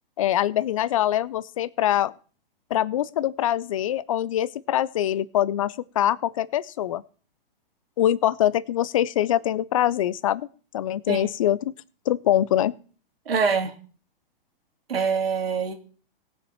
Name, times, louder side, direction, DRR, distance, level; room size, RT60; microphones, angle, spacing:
voice 1, 0.2-2.1 2.7-7.0 8.0-10.5 10.7-11.7 12.1-12.7, left 12 dB, 35° left, 20 dB, 0.4 m, -24 dB
voice 2, 13.3-13.7 14.9-15.7, right 5 dB, 90° right, 5 dB, 2.6 m, -24 dB
17.5 x 6.5 x 4.3 m, 0.41 s
hypercardioid pair, 155°, 29 cm